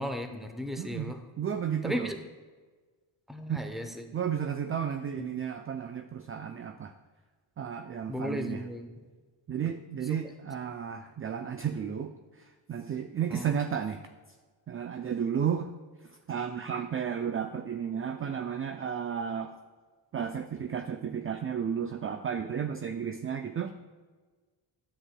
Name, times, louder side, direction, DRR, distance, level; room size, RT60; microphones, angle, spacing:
voice 1, 0.0-1.2 1.8-2.2 3.3-4.0 5.2-5.3 8.1-8.9 10.1-10.2 13.3-13.5, left 1 dB, ahead, 5 dB, 0.7 m, -35 dB
voice 2, 0.8-2.1 3.5-3.7 4.1-6.9 7.6-8.7 9.5-14.0 14.7-15.7 16.0-19.5 20.1-23.7, right 8 dB, 30° right, 7 dB, 0.3 m, -33 dB
9.7 x 7.8 x 2.2 m, 1.4 s
cardioid pair, 85°, 45 cm